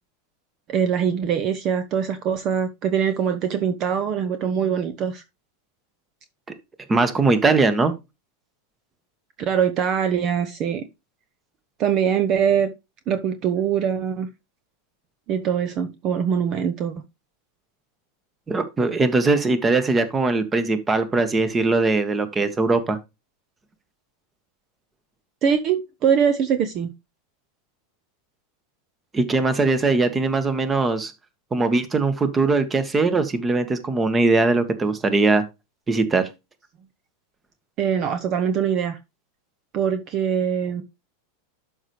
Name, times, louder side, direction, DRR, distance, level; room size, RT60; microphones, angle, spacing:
voice 1, 0.7-5.2 9.4-10.8 11.8-12.7 13.1-14.3 15.3-16.9 25.4-26.9 37.8-39.0 39.7-40.8, right 8 dB, 40° right, 0.9 m, -23 dB
voice 2, 6.9-7.9 18.5-23.0 29.1-31.1 31.5-35.4 35.9-36.3, right 3 dB, 20° right, 1.5 m, -20 dB
12.0 x 5.4 x 3.2 m
hypercardioid pair, 90°, 0 cm